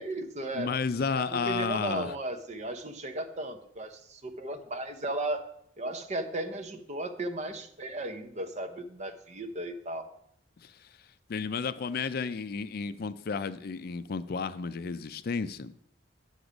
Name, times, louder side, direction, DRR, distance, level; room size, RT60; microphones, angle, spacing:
voice 1, 0.0-0.7 1.2-5.5 5.8-10.1, right 1 dB, 40° right, 0.8 m, -35 dB
voice 2, 0.5-2.1 10.6-10.9 11.3-15.7, left 5 dB, 55° left, 0.4 m, -32 dB
8.2 x 7.0 x 5.1 m
head